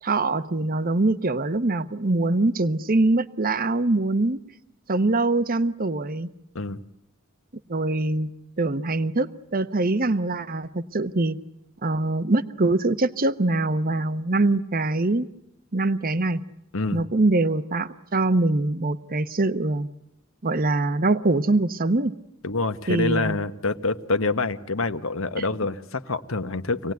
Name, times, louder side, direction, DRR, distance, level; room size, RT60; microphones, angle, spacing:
voice 1, 0.0-4.4 4.9-6.3 7.7-8.3 8.6-11.4 11.8-15.3 15.7-16.4 16.9-19.9 20.4-22.2 22.9-23.4 25.4-25.5, right 2 dB, 40° right, 13 dB, 0.9 m, -23 dB
voice 2, 22.4-26.9, left 3 dB, 65° left, 10 dB, 1.3 m, -26 dB
26.0 x 18.5 x 9.4 m, 0.83 s
head